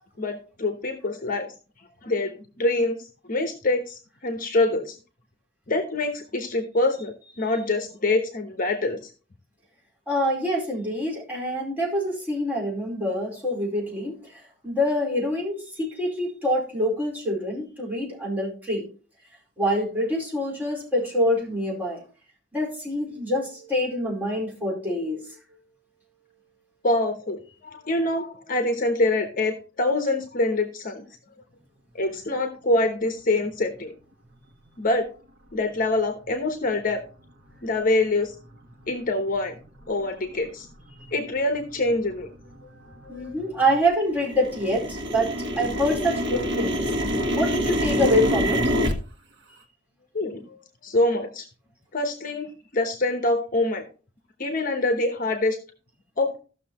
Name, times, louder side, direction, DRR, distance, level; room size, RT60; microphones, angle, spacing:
voice 1, 0.2-1.5 2.0-5.0 5.7-9.1 26.8-31.1 31.9-33.9 34.8-35.1 35.5-37.0 37.6-38.3 38.9-39.6 39.9-40.7 41.1-42.3 50.1-50.4 50.8-51.5 51.9-53.8 54.4-55.6 56.2-56.4, left 2 dB, 45° left, 6 dB, 1.0 m, -25 dB
voice 2, 10.1-18.9 19.6-22.0 22.5-25.4 41.0-41.1 43.0-48.6, equal, 10° right, -4 dB, 4.6 m, -26 dB
sound 1, 38.1-38.2 38.8-38.9 39.5-39.8 40.3-40.4 40.6-41.2 41.5-43.8 44.1-48.9, equal, 70° right, 1.5 m, -27 dB
15.0 x 6.4 x 3.0 m, 0.37 s
head